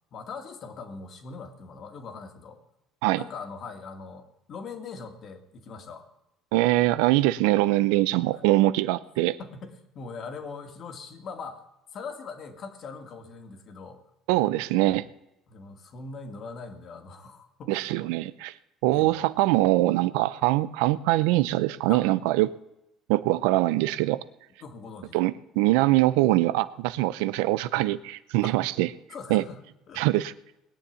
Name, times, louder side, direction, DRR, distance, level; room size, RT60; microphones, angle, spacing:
voice 1, 0.1-2.6 3.1-6.1 8.3-8.4 9.4-11.6 11.9-14.0 15.5-17.9 18.9-19.3 21.9-22.1 24.6-25.2 28.4-28.6 29.1-30.1, left 4 dB, 45° left, 6 dB, 2.2 m, -41 dB
voice 2, 6.5-9.4 14.3-15.1 17.7-18.5 18.8-22.5 23.1-24.2 25.1-28.9 29.3-29.4 30.0-30.3, right 17 dB, 85° right, 16 dB, 0.7 m, -23 dB
20.0 x 7.2 x 9.3 m, 0.87 s
cardioid pair, 115°, 0 cm